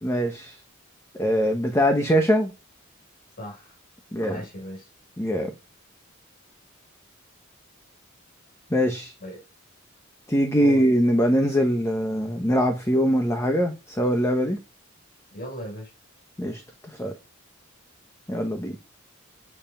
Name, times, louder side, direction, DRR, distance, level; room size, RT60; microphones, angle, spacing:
voice 1, 0.0-0.6 1.2-2.5 4.1-4.4 5.2-5.5 8.7-9.1 10.3-14.6 16.4-16.6 17.0-17.1 18.3-18.7, equal, 15° left, 1.1 m, -22 dB
voice 2, 3.4-3.7 4.2-4.9 9.2-9.4 10.6-10.8 15.3-15.9, equal, 50° left, 5.3 m, -37 dB
8.3 x 7.1 x 5.6 m
head